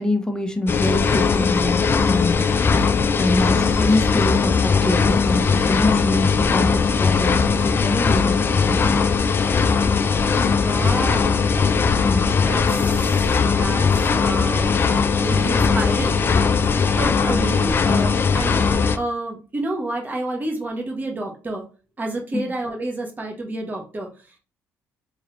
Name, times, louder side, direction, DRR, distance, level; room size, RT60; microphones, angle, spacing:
voice 1, 0.0-2.4 3.2-7.4 7.6-9.0 12.0-12.3 22.3-22.5, left 2 dB, 10° left, 5 dB, 0.8 m, -24 dB
sound 1, 0.7-19.0, left 5 dB, 35° left, 0.4 m, -19 dB
voice 2, 10.6-11.5 12.4-14.7 15.2-16.2 16.7-18.5 18.9-21.6 22.0-24.4, right 2 dB, 30° right, 0 dB, 1.2 m, -29 dB
3.6 x 3.0 x 3.1 m, 0.35 s
cardioid pair, 80°, 6 cm